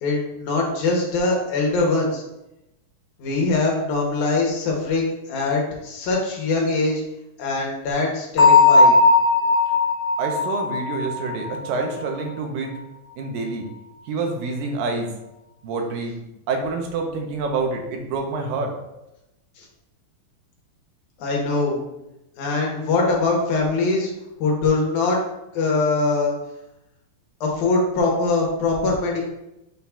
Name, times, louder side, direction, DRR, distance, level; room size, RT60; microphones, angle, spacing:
voice 1, 0.0-2.2 3.2-7.0 7.4-9.0 19.6-19.7 21.2-21.8 22.4-24.1 24.4-25.2 25.5-26.3 27.4-29.3, left 3 dB, 70° left, -1 dB, 2.3 m, -22 dB
Bell, 8.4-12.0, left 3 dB, 45° left, 1.8 m, -17 dB
voice 2, 10.2-12.7 13.2-13.6 14.1-15.1 15.6-16.1 16.5-18.7, right 3 dB, 80° right, 2 dB, 2.4 m, -27 dB
7.3 x 5.7 x 2.3 m, 0.90 s
omnidirectional pair, 4.1 m